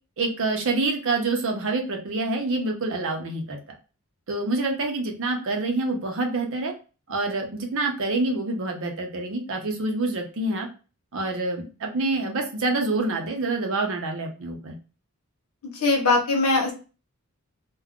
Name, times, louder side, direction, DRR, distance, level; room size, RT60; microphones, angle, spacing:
voice 1, 0.2-3.6 4.3-6.7 7.1-10.7 11.1-14.7, right 2 dB, 65° right, 3 dB, 0.7 m, -27 dB
voice 2, 15.7-16.7, left 3 dB, 80° left, 0 dB, 0.9 m, -21 dB
2.3 x 2.2 x 3.5 m, 0.34 s
head